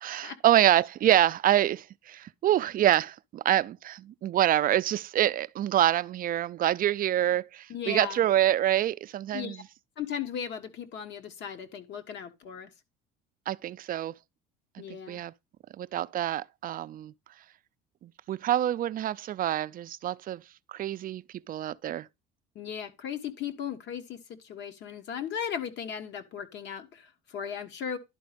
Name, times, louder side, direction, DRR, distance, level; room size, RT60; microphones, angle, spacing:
voice 1, 0.0-9.6 13.5-14.1 15.1-15.3 15.8-17.1 18.0-20.4 20.7-22.1, right 12 dB, 45° right, 0.4 m, -26 dB
voice 2, 7.7-8.2 9.3-9.6 10.0-12.7 14.8-15.2 22.5-24.2 24.4-28.0, left 8 dB, 60° left, 1.5 m, -37 dB
11.5 x 4.1 x 5.1 m
supercardioid pair, 90°, 21 cm